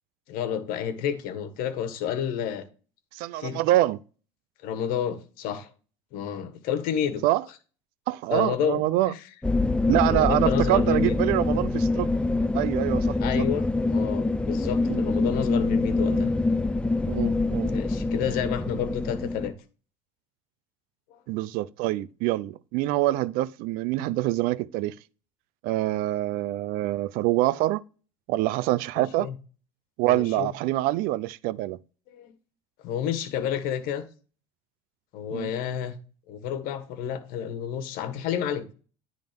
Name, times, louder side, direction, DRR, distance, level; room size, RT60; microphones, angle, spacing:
voice 1, 0.3-2.7 3.4-3.6 4.6-5.7 6.1-7.2 8.3-9.2 10.1-11.1 13.2-16.3 17.7-19.5 21.1-21.2 29.0-29.3 30.1-30.5 32.1-32.3 32.8-34.0 35.1-35.9 36.3-38.6, left 9 dB, 70° left, 1.6 m, -30 dB
voice 2, 3.1-4.0 7.2-7.4 8.1-9.1 9.9-12.1 12.5-13.4 14.9-15.0 16.1-16.3 17.1-17.8 21.3-25.0 25.6-27.8 28.3-29.3 30.0-31.8 35.3-35.5, right 16 dB, 70° right, 0.5 m, -25 dB
sound 1, 9.4-19.5, left 2 dB, 5° left, 0.6 m, -25 dB
10.5 x 3.7 x 5.2 m
supercardioid pair, 100°, 15 cm